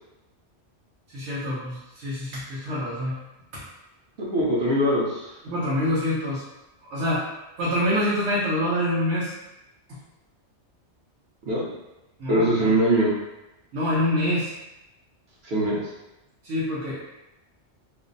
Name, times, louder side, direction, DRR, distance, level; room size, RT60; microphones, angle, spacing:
voice 1, 1.1-3.2 3.5-3.6 5.4-6.4 6.9-7.3 7.6-9.3 12.2-12.7 13.7-14.5 16.4-17.0, left 1 dB, 90° right, -8 dB, 1.0 m, -26 dB
voice 2, 4.2-5.4 11.5-11.7 12.3-13.1 15.4-15.8, right 1 dB, 65° right, -6 dB, 0.9 m, -22 dB
2.5 x 2.0 x 2.5 m, 0.96 s
omnidirectional pair, 1.2 m